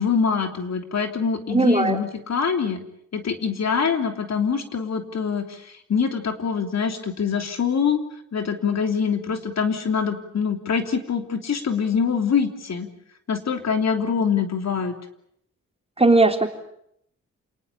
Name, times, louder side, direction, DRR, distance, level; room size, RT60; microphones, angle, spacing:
voice 1, 0.0-2.8 3.1-8.0 8.3-12.9 13.3-14.9, left 6 dB, 65° left, 6 dB, 3.3 m, -24 dB
voice 2, 1.5-2.0 16.0-16.5, right 3 dB, 20° right, 5 dB, 3.7 m, -17 dB
28.5 x 19.5 x 8.6 m, 0.72 s
cardioid pair, 90°, 30 cm